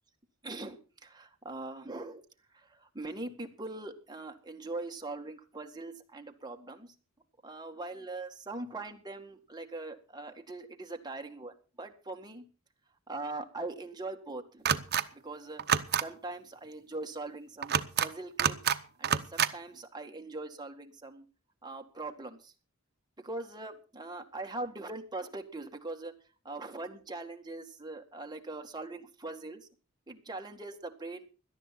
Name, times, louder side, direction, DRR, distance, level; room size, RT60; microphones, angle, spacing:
voice 1, 0.4-2.2 2.5-6.9 7.4-12.4 13.1-14.7 15.1-15.6 16.0-18.7 19.0-21.3 21.6-22.5 23.2-26.1 26.4-29.7 30.1-31.3, right 2 dB, 20° right, 4 dB, 1.9 m, -41 dB
sound 1, 14.6-15.0 15.6-16.0 17.6-18.1 18.4-18.8 19.0-19.5, right 8 dB, 50° right, 0.9 m, -27 dB
17.5 x 12.0 x 4.3 m, 0.34 s
head